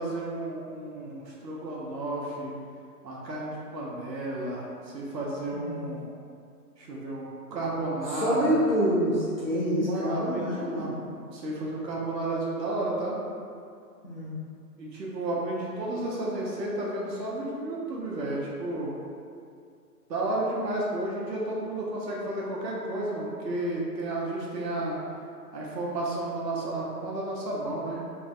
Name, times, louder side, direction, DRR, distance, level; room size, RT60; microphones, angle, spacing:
voice 1, 0.0-2.5 3.0-4.7 4.9-6.1 6.8-7.2 7.5-8.6 9.9-10.9 11.3-13.2 14.8-19.0 20.1-25.0 25.5-28.0, right 2 dB, 85° right, -4 dB, 0.8 m, -32 dB
voice 2, 8.1-10.9 14.0-14.4, equal, 40° left, -11 dB, 0.5 m, -27 dB
2.5 x 2.1 x 2.5 m, 2.4 s
hypercardioid pair, 170°, 49 cm